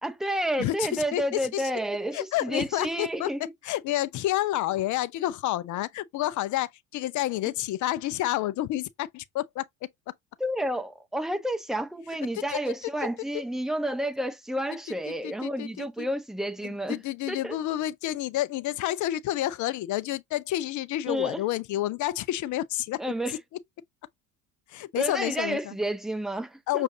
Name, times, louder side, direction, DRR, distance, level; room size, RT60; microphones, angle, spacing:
voice 1, 0.0-3.5 10.4-17.0 17.3-17.6 21.1-21.4 23.0-23.4 25.0-26.8, right 1 dB, ahead, 0.8 m, -30 dB
voice 2, 0.6-1.7 2.1-3.3 3.6-10.1 12.3-12.6 13.3-13.4 15.1-16.1 16.6-23.0 24.7-25.7 26.7-26.8, left 14 dB, 45° left, 0.6 m, -29 dB
6.3 x 2.6 x 2.7 m
hypercardioid pair, 70°, 42 cm